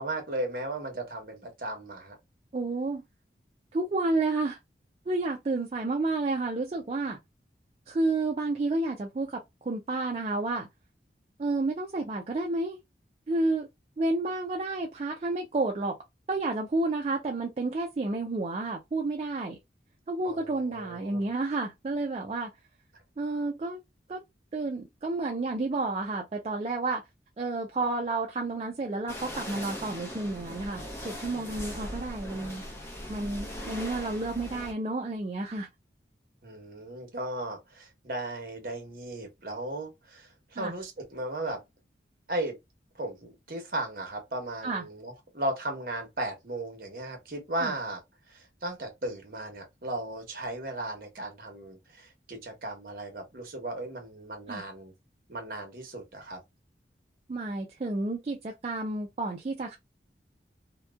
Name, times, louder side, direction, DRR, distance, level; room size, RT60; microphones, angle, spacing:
voice 1, 0.0-2.2 20.2-21.2 36.4-41.6 42.3-42.6 43.0-48.0 48.3-54.9 55.3-56.4, right 1 dB, 55° right, 0.9 m, -36 dB
voice 2, 2.5-3.0 3.7-4.6 5.1-7.2 7.9-10.7 11.4-12.8 13.3-13.7 14.0-16.0 16.3-19.6 20.1-22.5 23.2-23.8 24.1-24.2 24.5-27.0 27.4-32.6 33.1-35.7 40.6-40.7 44.6-44.8 47.6-47.7 54.5-54.6 57.3-59.8, right 2 dB, 35° right, 0.3 m, -30 dB
sound 1, 29.1-34.7, left 1 dB, 15° left, 0.6 m, -39 dB
2.8 x 2.1 x 2.3 m
head